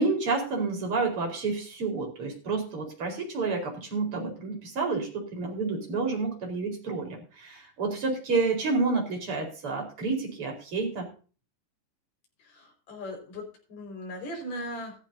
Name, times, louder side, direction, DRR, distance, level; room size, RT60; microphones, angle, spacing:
voice 1, 0.0-11.1, right 3 dB, 40° right, 2 dB, 5.2 m, -29 dB
voice 2, 12.4-14.9, left 1 dB, 50° left, 1 dB, 6.4 m, -38 dB
15.0 x 14.5 x 2.8 m, 0.37 s
omnidirectional pair, 4.0 m